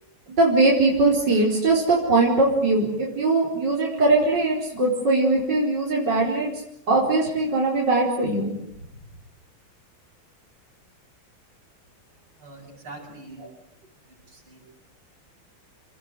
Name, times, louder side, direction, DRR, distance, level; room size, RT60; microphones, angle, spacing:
voice 1, 0.3-6.5 6.9-8.5, right 2 dB, 55° right, -3 dB, 5.4 m, -21 dB
voice 2, 12.4-13.5 14.3-14.7, right 2 dB, 80° right, 0 dB, 8.5 m, -43 dB
28.5 x 20.0 x 9.4 m, 0.77 s
omnidirectional pair, 2.3 m